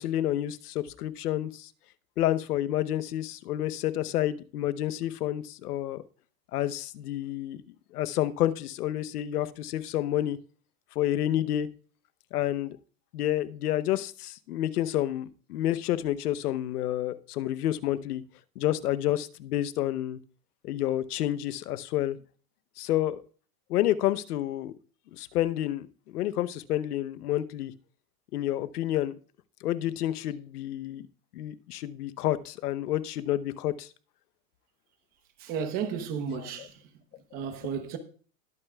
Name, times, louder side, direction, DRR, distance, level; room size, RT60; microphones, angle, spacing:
voice 1, 0.0-1.7 2.2-6.0 6.5-7.6 7.9-10.4 10.9-11.7 12.3-12.8 13.1-18.2 18.6-20.2 20.6-22.2 22.8-23.2 23.7-24.7 25.1-27.7 28.3-29.1 29.6-31.0 31.3-33.9 36.6-36.7, left 13 dB, 75° left, 0.9 m, -29 dB
voice 2, 35.4-36.7 37.3-38.0, right 7 dB, 20° right, 0.9 m, -33 dB
20.0 x 8.9 x 2.3 m
supercardioid pair, 175°, 46 cm